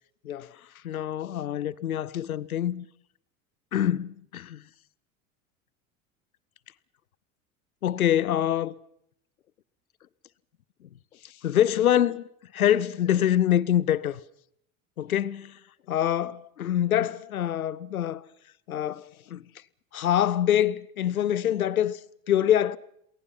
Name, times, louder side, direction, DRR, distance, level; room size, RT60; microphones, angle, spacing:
voice 1, 0.2-2.9 3.7-4.6 7.8-8.7 11.2-12.3 12.5-14.2 15.0-15.6 15.9-18.2 18.7-19.4 19.9-22.0 22.3-22.8, left 11 dB, 80° left, 0.9 m, -25 dB
28.0 x 21.0 x 5.7 m
figure-of-eight pair, 75°, 42 cm